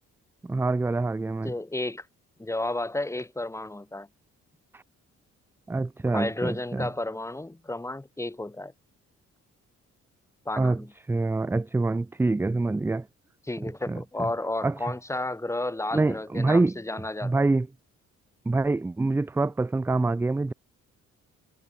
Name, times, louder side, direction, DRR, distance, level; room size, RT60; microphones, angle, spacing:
voice 1, 0.4-1.5 4.7-4.8 5.7-6.9 10.6-10.8 11.1-13.1 13.9-14.0 14.6-14.7 15.9-16.8 17.2-17.7 18.5-20.5, right 3 dB, 10° right, 0.3 m, -25 dB
voice 2, 1.4-2.1 2.4-4.1 6.1-8.7 10.4-10.9 13.4-17.5, left 2 dB, 10° left, 1.3 m, -32 dB
cardioid pair, 90°, 30 cm